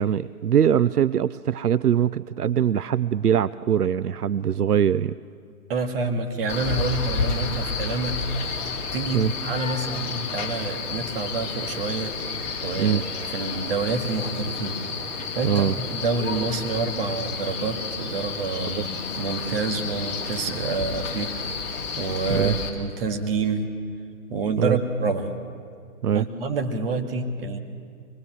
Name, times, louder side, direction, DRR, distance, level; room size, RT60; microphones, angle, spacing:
voice 1, 0.0-5.1 9.1-9.3 12.7-13.0 15.4-15.7 22.3-22.6 24.6-24.8 26.0-26.3, right 9 dB, 85° right, 17 dB, 0.6 m, -22 dB
voice 2, 5.7-8.2 8.9-12.1 12.6-14.8 15.3-21.7 22.0-23.7 24.3-25.3 26.1-27.6, right 3 dB, 40° right, 5 dB, 2.1 m, -28 dB
Male speech man speaking, 6.5-22.7, left 4 dB, 25° left, 2.9 m, -31 dB
24.0 x 21.0 x 6.3 m, 2.2 s
figure-of-eight pair, 135°, 44 cm